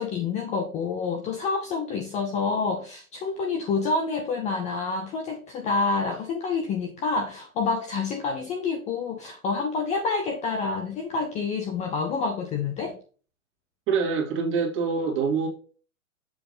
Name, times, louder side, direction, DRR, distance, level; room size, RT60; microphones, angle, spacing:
voice 1, 0.0-13.0, left 4 dB, 15° left, 0.5 m, -28 dB
voice 2, 13.9-15.5, right 5 dB, 30° right, 2.0 m, -25 dB
7.1 x 3.1 x 5.4 m
hypercardioid pair, 140°, 42 cm